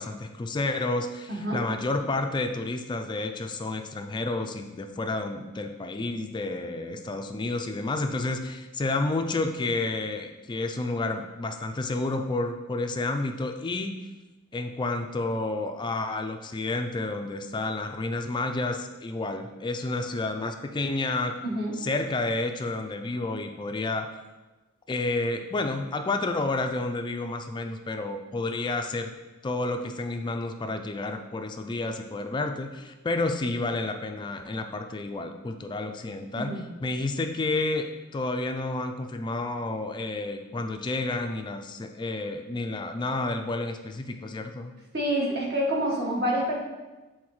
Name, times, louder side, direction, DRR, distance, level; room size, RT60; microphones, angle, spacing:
voice 1, 0.0-14.0 14.5-21.4 21.7-24.1 24.9-29.1 29.4-36.5 36.8-44.7, left 2 dB, 20° left, 6 dB, 0.3 m, -30 dB
voice 2, 44.9-46.6, equal, 50° right, -3 dB, 1.5 m, -27 dB
8.4 x 3.9 x 3.1 m, 1.1 s
head